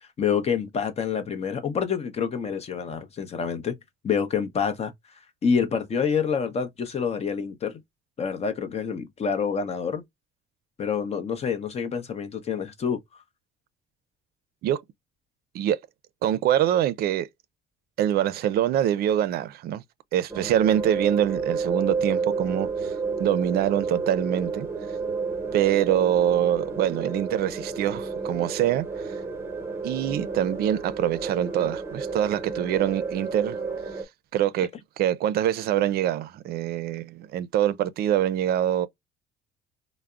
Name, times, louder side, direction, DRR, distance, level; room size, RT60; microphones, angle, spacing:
voice 1, 0.2-3.8 4.0-4.9 5.4-7.8 8.2-10.0 10.8-13.0, left 6 dB, 40° left, 0.7 m, -27 dB
voice 2, 16.2-17.3 18.0-19.8 20.1-22.9 23.2-24.7 25.5-29.1 29.8-33.6 34.3-34.7 35.0-38.9, right 11 dB, 65° right, 0.4 m, -24 dB
sound 1, 20.3-34.0, right 4 dB, 15° right, 0.9 m, -31 dB
3.4 x 2.0 x 2.3 m
cardioid pair, 110°, 17 cm